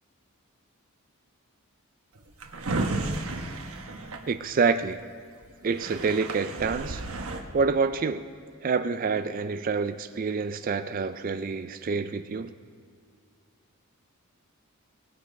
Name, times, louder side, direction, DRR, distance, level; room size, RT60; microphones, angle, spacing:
Drawer open or close, 2.2-4.9 5.4-5.5 5.7-7.4, right 2 dB, 75° right, 1.2 m, -33 dB
voice 1, 4.3-5.0 5.6-7.0 7.5-8.2 8.6-12.5, right 5 dB, 40° right, 11 dB, 0.4 m, -27 dB
20.0 x 8.2 x 5.3 m, 2.4 s
head